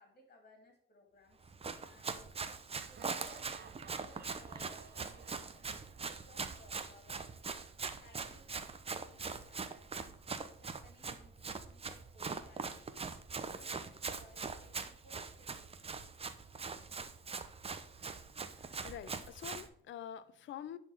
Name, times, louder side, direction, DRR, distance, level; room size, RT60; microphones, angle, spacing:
voice 1, 0.0-1.5 1.9-2.3 2.8-7.4 8.0-13.1 13.6-15.9 17.1-17.4, left 2 dB, 45° left, 2.9 m, -62 dB
Run, 1.4-19.7, right 4 dB, 30° right, 0.9 m, -42 dB
Laughter, 2.7-6.6, right 8 dB, 50° right, 0.7 m, -56 dB
voice 2, 18.8-20.8, left 10 dB, 75° left, 0.7 m, -46 dB
10.5 x 4.4 x 5.7 m
cardioid pair, 90°, 20 cm